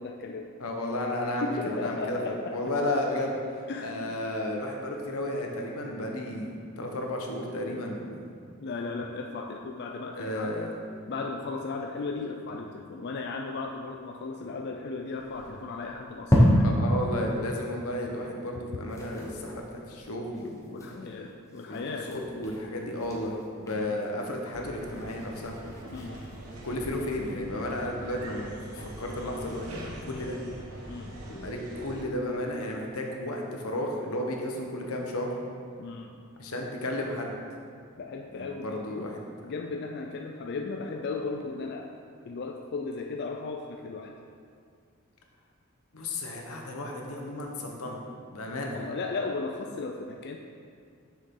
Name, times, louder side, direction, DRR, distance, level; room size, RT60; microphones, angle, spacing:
voice 1, 0.0-0.5 1.4-2.6 3.7-4.2 8.6-10.7 11.1-16.7 20.7-22.1 23.7-23.9 25.9-26.4 30.9-31.2 35.8-36.2 38.0-39.1 39.4-41.9 42.2-44.1 48.7-50.4, left 3 dB, 50° left, 2 dB, 0.4 m, -36 dB
voice 2, 0.6-3.4 3.8-8.2 10.1-10.7 16.6-20.9 21.6-21.8 22.1-25.5 26.6-30.4 31.3-35.3 36.4-37.3 38.3-39.3 45.9-48.0 48.3-48.8, left 1 dB, 90° left, 1 dB, 1.0 m, -33 dB
sound 1, 15.2-17.0 17.5-17.6 17.9-18.0 18.3-18.5 18.8-27.4, equal, 15° left, 0.9 m, -31 dB
sound 2, 24.5-32.0, right 1 dB, 85° right, 1.0 m, -43 dB
6.6 x 6.5 x 3.8 m, 2.2 s
head